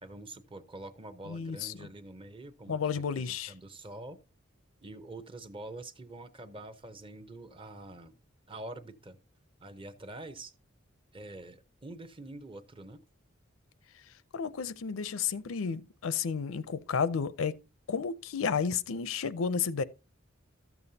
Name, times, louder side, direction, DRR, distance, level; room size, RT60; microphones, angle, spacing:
voice 1, 0.0-4.2 4.8-8.2 8.5-9.2 9.6-10.5 11.1-13.0, right 2 dB, 25° right, 0.7 m, -46 dB
voice 2, 1.3-1.7 2.7-3.5 14.3-17.6 17.9-19.8, left 6 dB, 80° left, 0.5 m, -32 dB
13.0 x 7.0 x 2.7 m
head